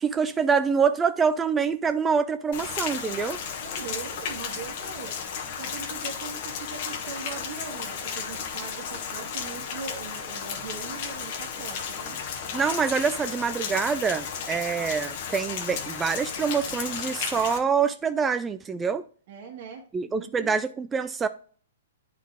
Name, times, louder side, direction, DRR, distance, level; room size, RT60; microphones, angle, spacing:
voice 1, 0.0-3.4 12.5-19.0 19.9-21.3, right 6 dB, 15° right, 0.3 m, -25 dB
Rain, 2.5-17.6, left 7 dB, 50° left, 1.2 m, -34 dB
voice 2, 3.6-5.2 5.5-12.2 19.3-20.5, right 6 dB, 50° right, 1.5 m, -40 dB
9.0 x 4.1 x 3.5 m
hypercardioid pair, 115°, 0 cm